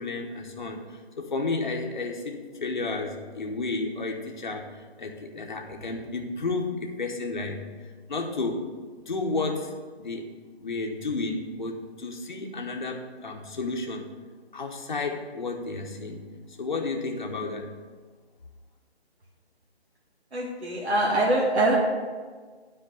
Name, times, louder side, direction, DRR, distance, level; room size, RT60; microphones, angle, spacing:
voice 1, 0.0-7.7 8.1-8.7 9.1-9.7 10.0-10.3 10.6-14.1 14.5-16.2 16.5-17.7, left 3 dB, 45° left, 2 dB, 1.0 m, -32 dB
voice 2, 20.3-21.8, right 1 dB, 85° right, -4 dB, 2.1 m, -23 dB
9.3 x 4.5 x 7.5 m, 1.5 s
hypercardioid pair, 180°, 32 cm